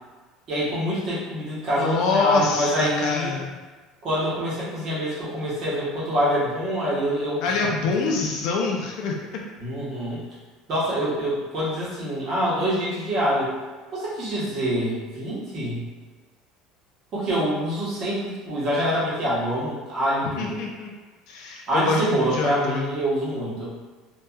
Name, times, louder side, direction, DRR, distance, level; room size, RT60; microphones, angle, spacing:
voice 1, 0.5-3.3 4.0-7.7 9.6-10.2 10.7-13.5 13.9-15.9 17.1-20.6 21.7-23.7, equal, 40° right, -7 dB, 0.9 m, -26 dB
voice 2, 1.8-3.5 7.4-9.4 20.4-20.9 21.3-22.9, left 3 dB, 55° left, 0 dB, 0.4 m, -25 dB
2.7 x 2.2 x 2.3 m, 1.3 s
cardioid pair, 160°, 0 cm